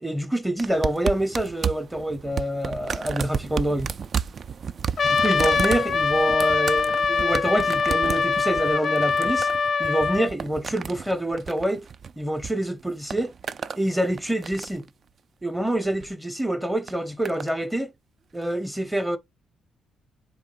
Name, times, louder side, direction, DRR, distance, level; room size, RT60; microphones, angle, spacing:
voice 1, 0.0-3.9 5.1-9.5 9.8-11.9 12.2-13.3 13.7-14.9 15.4-17.9 18.3-19.2, right 1 dB, 5° right, 0.7 m, -26 dB
sound 1, 0.6-12.5 12.8-13.8 14.2-14.9 15.8-16.1 16.9-17.5 18.4-18.5, right 6 dB, 50° right, 0.3 m, -33 dB
Trumpet, 5.0-10.3, left 5 dB, 45° left, 0.4 m, -23 dB
4.4 x 2.8 x 3.8 m
cardioid pair, 90°, 0 cm